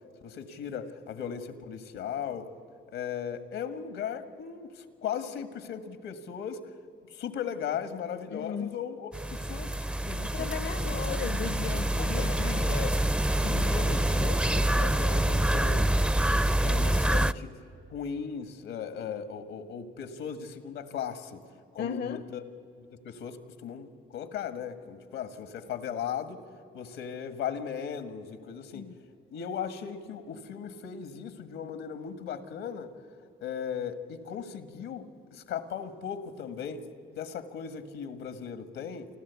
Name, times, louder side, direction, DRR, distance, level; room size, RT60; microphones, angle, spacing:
voice 1, 0.2-2.5 2.9-6.6 7.1-9.1 9.4-10.5 10.8-11.2 12.0-12.9 13.4-15.9 16.6-17.5 17.9-21.4 21.7-22.4 22.9-26.4 26.7-28.9 29.3-32.9 33.4-36.8 37.1-39.1, left 7 dB, 90° left, 1.6 m, -37 dB
voice 2, 8.3-8.8 10.3-12.9 21.8-22.2 28.7-29.0, left 7 dB, 60° left, 0.6 m, -36 dB
sound 1, 9.1-17.3, right 1 dB, 5° right, 0.4 m, -26 dB
28.5 x 12.5 x 8.2 m
cardioid pair, 90°, 20 cm